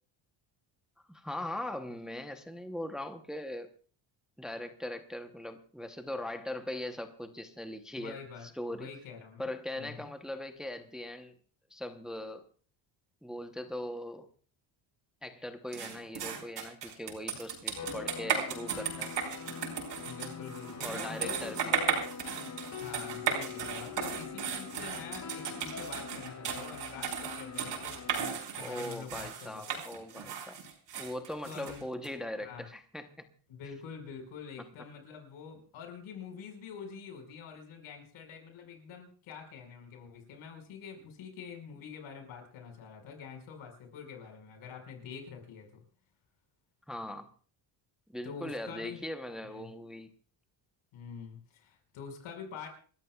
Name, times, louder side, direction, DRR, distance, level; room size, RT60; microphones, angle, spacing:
voice 1, 1.1-3.7 4.4-8.2 8.6-8.9 9.4-11.3 11.7-12.4 13.2-14.3 15.2-19.1 20.8-21.7 28.5-30.6 31.0-33.3 46.9-47.3 48.1-50.1, left 1 dB, ahead, 6 dB, 0.8 m, -40 dB
voice 2, 8.0-10.1 20.0-21.7 22.5-29.8 31.4-31.8 32.4-32.6 33.5-45.8 48.2-49.0 49.4-49.7 50.9-52.7, left 6 dB, 85° left, 4 dB, 5.2 m, -46 dB
sound 1, 15.7-32.1, right 7 dB, 60° right, 5.4 m, -36 dB
sound 2, 17.8-28.3, left 6 dB, 35° left, 1.2 m, -43 dB
29.0 x 13.5 x 2.3 m, 0.43 s
cardioid pair, 160°, 47 cm